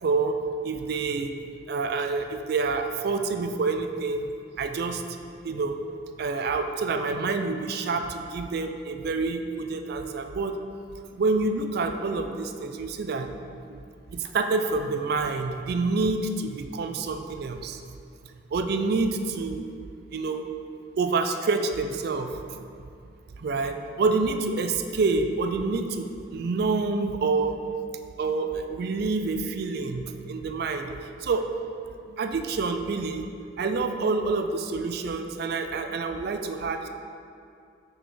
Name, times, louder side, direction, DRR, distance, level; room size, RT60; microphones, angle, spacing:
voice 1, 0.0-0.4 0.6-1.3 1.7-4.3 4.6-5.0 5.4-5.8 6.2-10.5 11.1-13.8 14.1-17.8 18.5-19.7 20.1-20.5 21.0-22.7 23.4-27.6 28.2-31.5 32.1-33.3 33.6-36.9, right 3 dB, 55° right, 7 dB, 0.3 m, -27 dB
6.1 x 5.0 x 3.2 m, 2.4 s
head